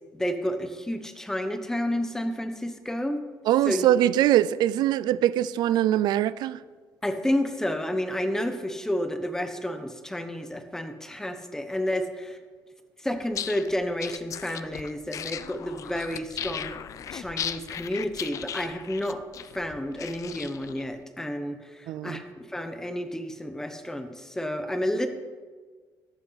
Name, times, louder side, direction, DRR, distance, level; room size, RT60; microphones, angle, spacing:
voice 1, 0.1-3.2 3.7-3.9 7.0-12.4 13.0-16.8 17.1-25.1, left 1 dB, 5° left, 1.0 m, -30 dB
voice 2, 3.5-6.6 21.9-22.2, right 12 dB, 80° right, 0.4 m, -22 dB
sound 1, 13.2-20.8, left 9 dB, 50° left, 0.5 m, -37 dB
13.5 x 11.5 x 4.0 m
cardioid pair, 135°, 7 cm